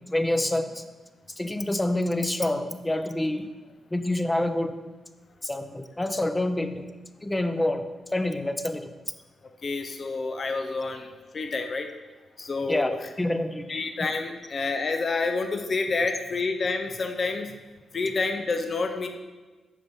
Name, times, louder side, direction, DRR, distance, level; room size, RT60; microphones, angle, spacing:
voice 1, 0.1-0.8 1.4-3.5 3.9-4.7 5.4-6.9 7.2-7.8 8.1-8.9 12.7-12.9 13.2-13.8, left 1 dB, 20° left, 8 dB, 0.8 m, -27 dB
voice 2, 9.6-11.1 11.3-11.9 12.4-13.0 13.7-17.5 17.9-19.1, left 3 dB, 50° left, 5 dB, 0.8 m, -28 dB
7.6 x 5.4 x 5.4 m, 1.3 s
hypercardioid pair, 40°, 0 cm